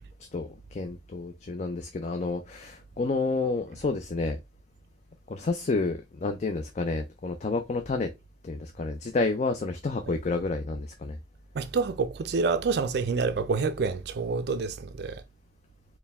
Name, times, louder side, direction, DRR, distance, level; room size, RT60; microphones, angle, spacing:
voice 1, 0.3-4.4 5.3-8.1 8.4-11.2, left 3 dB, 40° left, 0.4 m, -30 dB
voice 2, 11.5-15.2, right 4 dB, 60° right, 0.4 m, -27 dB
4.4 x 2.2 x 3.4 m
head